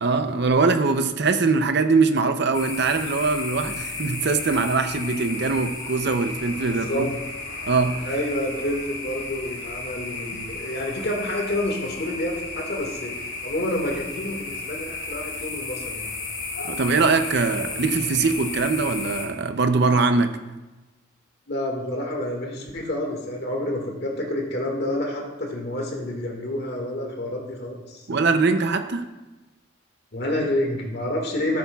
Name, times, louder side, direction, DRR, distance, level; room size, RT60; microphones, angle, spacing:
voice 1, 0.0-7.1 7.7-8.0 16.7-20.3 28.1-29.1, right 4 dB, 50° right, 8 dB, 0.6 m, -22 dB
sound 1, 2.5-19.2, left 3 dB, 80° left, 3.2 m, -34 dB
voice 2, 6.7-7.1 8.0-13.1 13.4-16.1 21.5-28.1 30.1-31.6, left 1 dB, 50° left, 0 dB, 1.8 m, -28 dB
14.0 x 8.4 x 2.3 m, 1.1 s
head